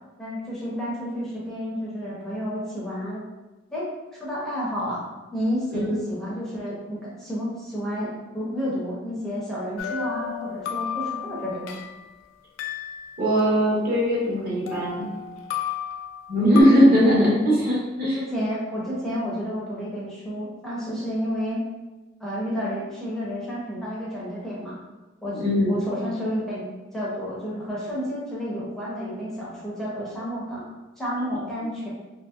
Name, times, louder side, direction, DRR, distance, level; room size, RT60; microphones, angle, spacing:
voice 1, 0.2-3.2 3.7-5.0 5.3-11.8 16.4-16.9 17.6-17.7 18.1-21.6 22.2-24.7 25.2-30.6 31.0-31.9, equal, ahead, -8 dB, 0.6 m, -30 dB
voice 2, 5.7-6.0 13.2-15.1 16.3-18.2 25.3-25.8, equal, 50° right, -6 dB, 1.0 m, -20 dB
sound 1, 9.8-12.1 12.6-14.4 14.7-16.6, left 9 dB, 80° left, 0.3 m, -34 dB
2.7 x 2.7 x 2.3 m, 1.2 s
head